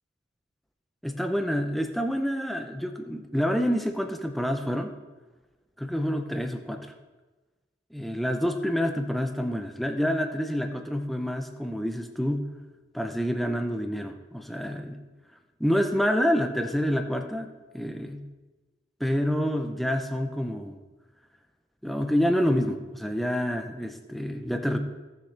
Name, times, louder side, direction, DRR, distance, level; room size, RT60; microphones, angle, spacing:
voice 1, 1.0-4.9 5.8-6.9 7.9-12.5 12.9-15.0 15.6-18.3 19.0-20.8 21.8-24.8, equal, ahead, 5 dB, 0.6 m, -28 dB
17.0 x 6.6 x 3.3 m, 1.2 s
head